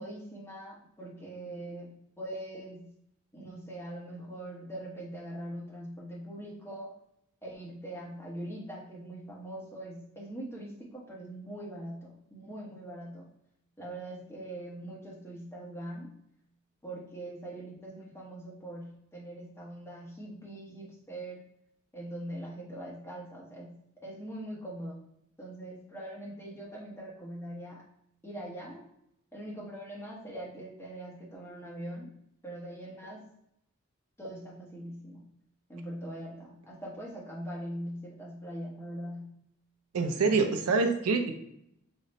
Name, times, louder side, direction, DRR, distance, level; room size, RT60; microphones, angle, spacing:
voice 1, 0.0-3.0 3.3-7.0 7.4-13.3 13.8-16.2 16.8-21.4 21.9-25.1 25.4-27.9 28.2-28.9 29.3-33.3 34.2-35.3 35.7-39.4, right 1 dB, 10° left, -4 dB, 0.9 m, -42 dB
voice 2, 39.9-41.3, right 4 dB, 85° right, 5 dB, 0.5 m, -26 dB
3.7 x 2.1 x 4.0 m, 0.76 s
head